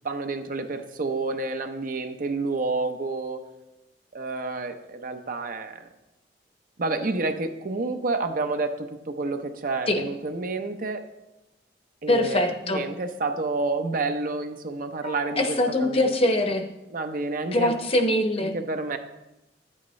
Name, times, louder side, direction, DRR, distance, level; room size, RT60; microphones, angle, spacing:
voice 1, 0.0-3.4 4.1-5.9 6.8-11.0 12.0-15.4 15.8-16.1 16.9-17.7 18.4-19.0, right 3 dB, 50° right, 7 dB, 0.7 m, -29 dB
voice 2, 12.1-12.8 15.0-16.7 17.5-18.5, left 1 dB, 35° left, 5 dB, 0.9 m, -23 dB
10.5 x 8.7 x 3.2 m, 0.95 s
head